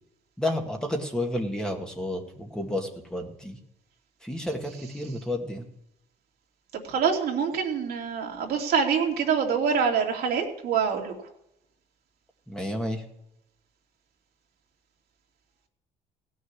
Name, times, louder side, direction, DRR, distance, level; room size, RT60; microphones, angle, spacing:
voice 1, 0.4-3.6 4.2-5.7 12.5-13.0, left 1 dB, 5° left, 2 dB, 2.1 m, -31 dB
voice 2, 6.7-11.1, right 6 dB, 70° right, 1 dB, 2.8 m, -25 dB
16.5 x 6.5 x 9.9 m, 0.80 s
cardioid pair, 110°, 17 cm